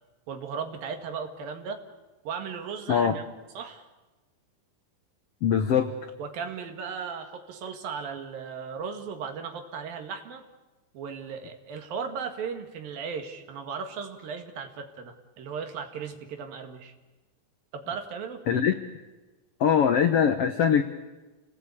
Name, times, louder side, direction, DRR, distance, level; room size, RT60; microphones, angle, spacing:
voice 1, 0.3-1.8 2.3-3.3 3.6-3.9 6.2-10.4 10.9-16.9 17.7-18.4, right 6 dB, 70° right, 6 dB, 3.7 m, -36 dB
voice 2, 5.4-5.9 18.5-18.7 19.6-20.8, left 8 dB, 80° left, 8 dB, 1.3 m, -22 dB
29.5 x 19.0 x 8.5 m, 1.2 s
omnidirectional pair, 4.3 m